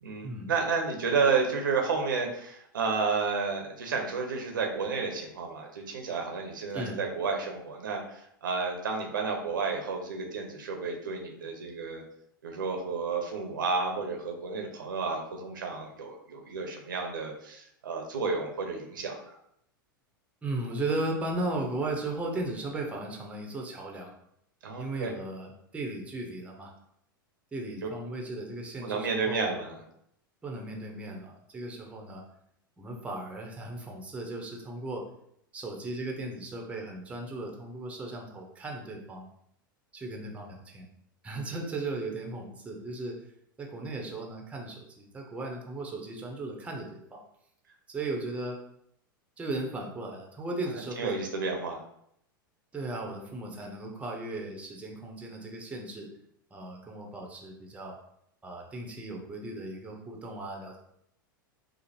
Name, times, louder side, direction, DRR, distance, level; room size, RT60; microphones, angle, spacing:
voice 1, 0.0-12.0 12.4-19.3 24.6-25.1 27.8-27.9 28.8-29.8 41.4-41.6 50.7-51.8, right 4 dB, 65° right, 2 dB, 0.7 m, -31 dB
voice 2, 20.4-24.1 24.8-26.7 27.5-29.6 30.4-32.2 32.8-35.0 35.5-39.3 39.9-40.9 41.2-43.2 43.6-47.2 47.9-48.6 49.4-51.2 52.7-56.1 56.5-58.0 58.4-60.8, right 2 dB, 10° right, 1 dB, 0.7 m, -36 dB
5.0 x 2.0 x 2.8 m, 0.73 s
figure-of-eight pair, 90°, 11 cm